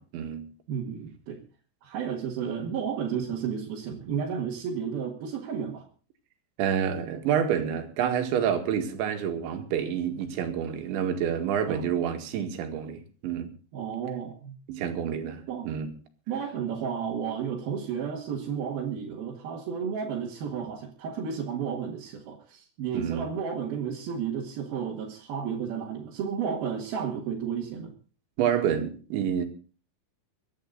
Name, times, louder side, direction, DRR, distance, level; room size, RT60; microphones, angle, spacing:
voice 1, 0.0-0.5 6.6-13.5 14.7-15.9 22.9-23.3 28.4-29.5, right 8 dB, 90° right, 4.3 m, -28 dB
voice 2, 0.7-1.4 1.8-5.9 11.7-11.8 13.7-14.5 15.5-15.7 16.3-27.9, right 7 dB, 60° right, 3.4 m, -32 dB
24.0 x 10.5 x 4.0 m
omnidirectional pair, 5.1 m